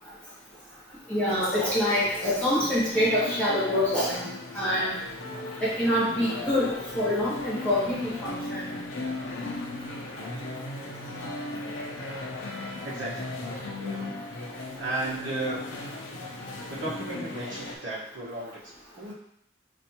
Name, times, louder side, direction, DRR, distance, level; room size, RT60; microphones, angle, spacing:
voice 1, 1.1-4.3 4.5-4.9 5.6-6.7 6.9-8.7, left 1 dB, 5° left, -9 dB, 1.3 m, -25 dB
sound 1, 1.3-17.8, left 2 dB, 75° left, 0.7 m, -37 dB
voice 2, 12.8-13.4 13.8-14.2 14.8-15.6 16.7-19.1, right 2 dB, 65° right, -7 dB, 1.1 m, -35 dB
5.3 x 2.6 x 2.9 m, 0.71 s
head